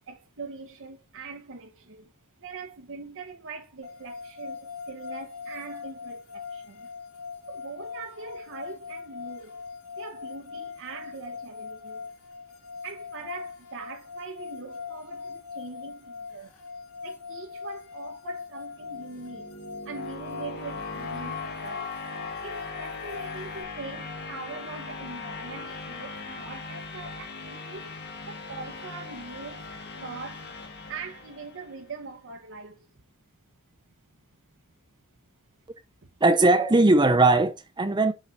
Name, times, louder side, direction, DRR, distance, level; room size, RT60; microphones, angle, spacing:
voice 1, 0.0-2.1 2.4-6.9 7.5-9.6 10.0-12.1 12.8-16.5 17.0-19.6 19.8-22.0 22.4-27.9 28.3-29.7 30.0-30.5 30.9-32.9, right 4 dB, 60° right, 1.0 m, -42 dB
sound 1, 3.8-23.6, left 5 dB, 85° left, 1.8 m, -41 dB
sound 2, 18.8-31.8, left 3 dB, 50° left, 1.6 m, -39 dB
voice 2, 36.2-38.1, right 2 dB, 20° right, 0.7 m, -19 dB
7.5 x 4.6 x 4.0 m
head